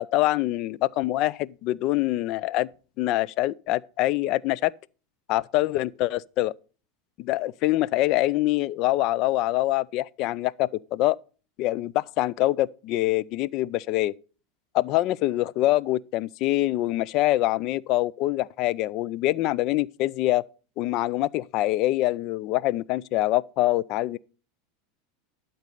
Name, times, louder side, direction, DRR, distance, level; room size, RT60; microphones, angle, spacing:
voice 1, 0.0-2.7 3.0-4.7 5.3-6.5 7.2-11.2 11.6-14.1 14.7-20.4 20.8-24.2, left 16 dB, 55° left, 0.4 m, -25 dB
12.0 x 4.0 x 6.6 m
hypercardioid pair, 95°, 0 cm